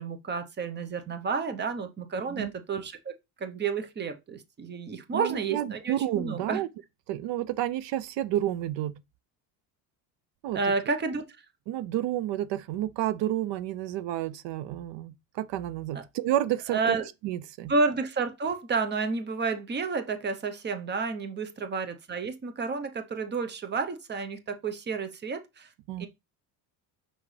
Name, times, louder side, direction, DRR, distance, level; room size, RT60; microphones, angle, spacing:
voice 1, 0.0-6.6 10.5-11.2 16.7-17.1 17.7-25.7 26.0-26.1, right 4 dB, 25° right, 0.8 m, -30 dB
voice 2, 2.2-2.5 5.1-6.7 7.1-8.9 10.4-10.6 11.7-17.0 17.2-17.7 25.9-26.1, right 13 dB, 75° right, 0.6 m, -30 dB
5.9 x 5.4 x 3.2 m
cardioid pair, 145°, 43 cm